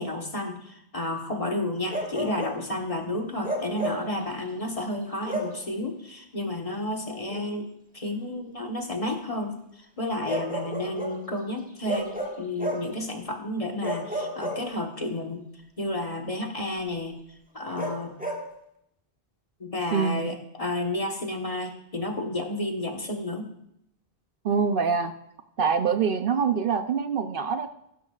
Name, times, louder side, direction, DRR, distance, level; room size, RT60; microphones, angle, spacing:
voice 1, 0.0-7.7 7.9-9.6 10.0-15.4 15.8-17.1 17.5-18.1 19.6-23.5, left 1 dB, 35° left, 2 dB, 1.4 m, -31 dB
Bark, 1.9-2.6 3.4-4.1 5.3-5.6 7.3-7.5 10.3-11.2 11.9-13.0 13.8-15.1 17.8-18.5, right 1 dB, 10° right, 1.5 m, -32 dB
voice 2, 19.9-20.3 24.4-25.1 25.6-27.7, right 6 dB, 60° right, 8 dB, 0.8 m, -25 dB
15.0 x 13.0 x 2.4 m, 0.78 s
omnidirectional pair, 1.1 m